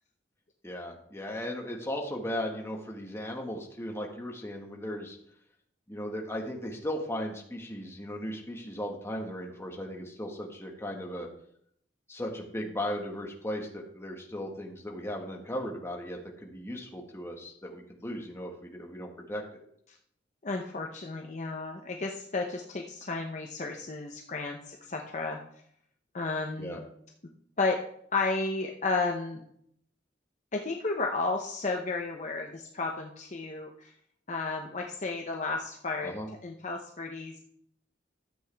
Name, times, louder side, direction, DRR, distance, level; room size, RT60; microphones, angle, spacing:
voice 1, 0.6-5.2 5.9-11.3 12.1-19.4 26.6-26.8 36.0-36.3, equal, 15° left, 0 dB, 1.6 m, -37 dB
voice 2, 20.4-25.4 26.1-26.8 27.6-27.8 28.1-29.4 30.5-33.9 34.3-36.1 36.4-37.4, left 3 dB, 40° left, 2 dB, 0.8 m, -32 dB
12.5 x 7.8 x 3.5 m, 0.68 s
head